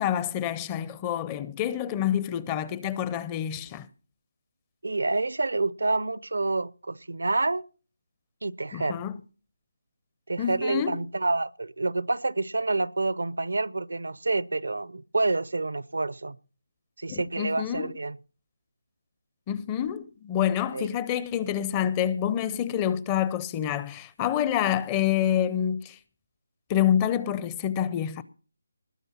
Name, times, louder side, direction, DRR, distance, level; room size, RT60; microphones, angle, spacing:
voice 1, 0.0-3.9 8.7-9.1 10.4-11.0 17.1-17.9 19.5-26.0 26.7-28.2, left 10 dB, 15° left, 0.5 m, -27 dB
voice 2, 4.8-7.6 8.4-9.0 10.3-16.4 17.0-18.2 20.7-20.9, right 2 dB, 80° right, 0.6 m, -28 dB
20.0 x 6.9 x 5.6 m
figure-of-eight pair, 165°, 0 cm